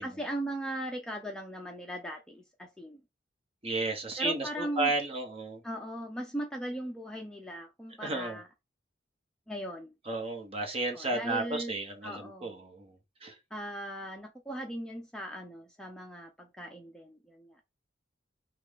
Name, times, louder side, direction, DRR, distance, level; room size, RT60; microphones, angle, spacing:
voice 1, 0.0-3.0 4.2-4.9 5.6-8.4 9.5-9.9 10.9-11.7 12.0-12.5 13.5-17.6, right 1 dB, 5° left, 0.6 m, -38 dB
voice 2, 3.6-5.6 8.0-8.4 10.0-13.4, right 2 dB, 30° right, 1.2 m, -33 dB
5.9 x 2.4 x 3.7 m
head